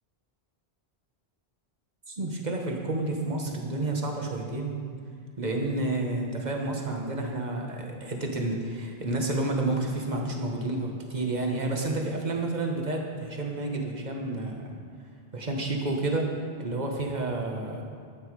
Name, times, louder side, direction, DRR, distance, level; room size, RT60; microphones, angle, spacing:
voice 1, 2.1-4.8 5.4-14.8 15.3-16.3 16.6-17.8, right 2 dB, 40° right, 1 dB, 1.5 m, -30 dB
12.5 x 9.3 x 4.8 m, 2.2 s
omnidirectional pair, 1.1 m